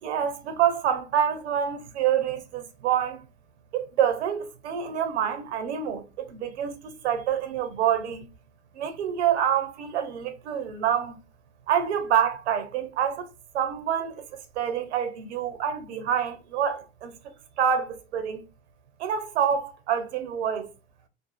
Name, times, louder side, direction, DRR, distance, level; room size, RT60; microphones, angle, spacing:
voice 1, 0.0-3.2 3.7-8.3 8.8-11.2 11.7-13.3 13.5-14.2 14.6-17.1 17.6-18.4 19.0-20.7, right 9 dB, 90° right, 0.6 m, -27 dB
2.5 x 2.4 x 2.2 m
hypercardioid pair, 100°, 33 cm